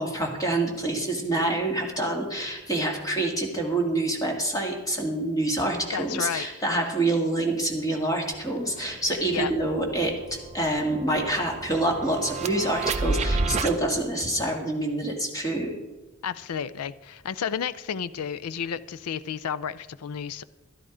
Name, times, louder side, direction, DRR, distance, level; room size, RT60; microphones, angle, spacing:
voice 1, 0.0-10.1 10.5-15.8, right 1 dB, 15° left, 1 dB, 1.8 m, -26 dB
voice 2, 5.9-6.5 9.3-9.5 16.2-20.4, left 7 dB, 85° left, 16 dB, 0.5 m, -32 dB
sound 1, 8.3-8.4 8.8-13.7, right 3 dB, 30° right, 0.6 m, -31 dB
12.5 x 11.0 x 5.0 m, 1.2 s
head